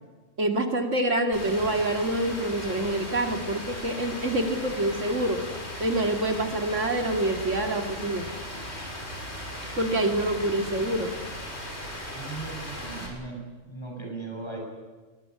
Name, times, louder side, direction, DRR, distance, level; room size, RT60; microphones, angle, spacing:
voice 1, 0.4-5.4 5.8-8.3 9.8-11.1, right 1 dB, 70° right, 5 dB, 2.7 m, -26 dB
Rain, 1.3-13.1, equal, 55° left, 6.6 m, -37 dB
voice 2, 12.1-14.6, right 3 dB, 20° left, 0 dB, 8.0 m, -38 dB
22.0 x 21.0 x 9.9 m, 1.4 s
omnidirectional pair, 1.3 m